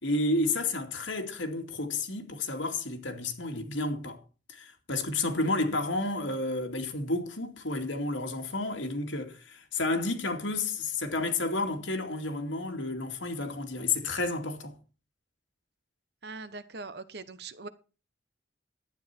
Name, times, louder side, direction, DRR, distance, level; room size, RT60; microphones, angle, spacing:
voice 1, 0.0-4.2 4.5-14.8, left 2 dB, 85° left, 2.5 m, -31 dB
voice 2, 16.2-17.7, right 3 dB, 55° right, 1.1 m, -41 dB
12.0 x 9.5 x 4.5 m
head